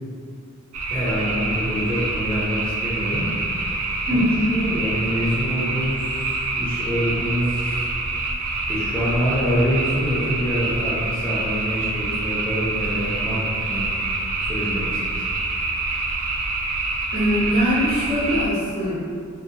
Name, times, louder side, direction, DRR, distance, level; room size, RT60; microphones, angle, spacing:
sound 1, 0.7-18.5, right 3 dB, 85° right, 0.3 m, -26 dB
voice 1, 0.9-3.3 3.6-3.8 4.1-5.9 6.5-7.8 8.7-13.4 13.7-13.9 14.5-15.0, equal, 5° left, -10 dB, 0.4 m, -25 dB
voice 2, 4.1-4.5 17.1-19.0, equal, 60° right, -11 dB, 1.2 m, -22 dB
2.5 x 2.0 x 2.6 m, 2.2 s
head